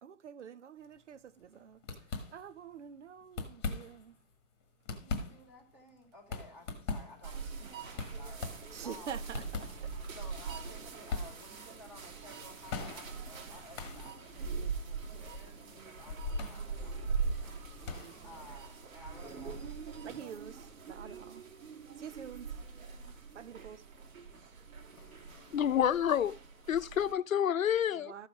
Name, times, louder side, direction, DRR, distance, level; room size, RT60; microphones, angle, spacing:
voice 1, 0.0-1.8 2.3-4.1 7.6-7.7 8.7-9.9 14.4-14.7 18.0-18.1 20.0-21.4 22.0-22.5 23.3-23.8 28.0-28.3, right 8 dB, 60° right, 0.9 m, -47 dB
sound 1, 0.9-1.2 1.4-1.5 1.8-2.7 3.2-4.2 4.6-19.5, left 4 dB, 20° left, 1.4 m, -42 dB
voice 2, 5.0-8.5 8.8-9.3 10.1-17.6 18.2-19.6, left 1 dB, 5° right, 1.2 m, -55 dB
sound 2, 7.2-27.1, right 5 dB, 85° right, 2.6 m, -42 dB
voice 3, 25.5-26.3 26.7-28.1, left 9 dB, 80° left, 1.0 m, -28 dB
13.5 x 5.9 x 6.0 m
hypercardioid pair, 180°, 40 cm